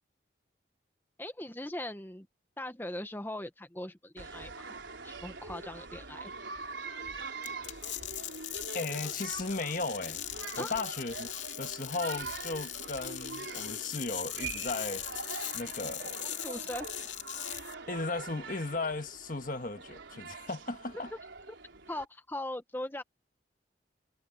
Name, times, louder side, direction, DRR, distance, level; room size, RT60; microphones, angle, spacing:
voice 1, 1.2-2.3 2.6-4.7 5.0-6.3 10.6-10.8 16.4-17.1 21.1-21.2 21.9-23.0, left 1 dB, 10° left, 0.9 m, -40 dB
sound 1, 4.2-22.1, right 4 dB, 85° right, 4.1 m, -44 dB
sound 2, 7.4-17.7, left 13 dB, 85° left, 2.4 m, -40 dB
voice 2, 8.7-11.3 11.6-15.0 15.5-16.2 17.9-21.1, left 3 dB, 45° left, 1.6 m, -36 dB
head